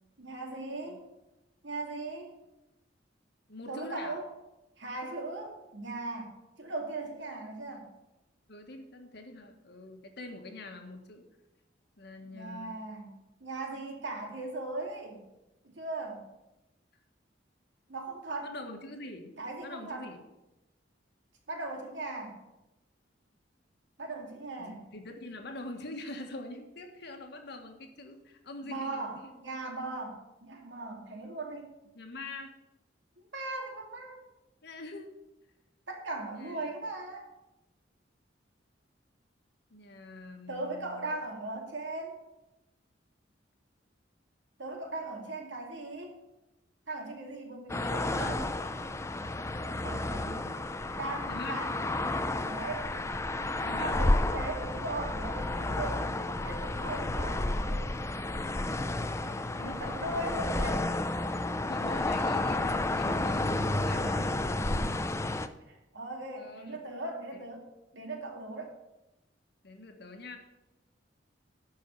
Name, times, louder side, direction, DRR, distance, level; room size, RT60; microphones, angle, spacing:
voice 1, 0.2-1.0 1.6-2.3 3.7-4.3 4.8-7.9 12.2-15.2 15.8-16.3 17.9-18.5 19.4-20.1 21.5-22.4 24.0-24.8 28.6-31.7 33.2-34.2 35.9-37.3 40.5-42.2 44.6-46.1 46.9-48.5 49.8-50.4 50.9-51.7 52.4-52.9 53.8-57.9 59.5-60.8 64.6-64.9 65.7-67.6 67.9-68.8, right 2 dB, 75° right, 1 dB, 2.4 m, -39 dB
voice 2, 3.5-4.2 8.5-11.3 12.0-12.8 18.4-19.3 19.6-20.2 24.6-29.3 31.9-32.6 34.6-35.1 36.3-36.7 39.7-41.1 47.8-48.4 51.2-51.7 53.6-54.0 56.4-56.5 58.8-60.0 60.6-60.8 61.6-64.4 66.4-66.8 67.3-67.4 69.6-70.4, left 2 dB, 60° left, 4 dB, 1.4 m, -44 dB
sound 1, 47.7-65.5, left 2 dB, 15° left, 0.5 m, -31 dB
12.0 x 4.7 x 8.3 m, 0.96 s
head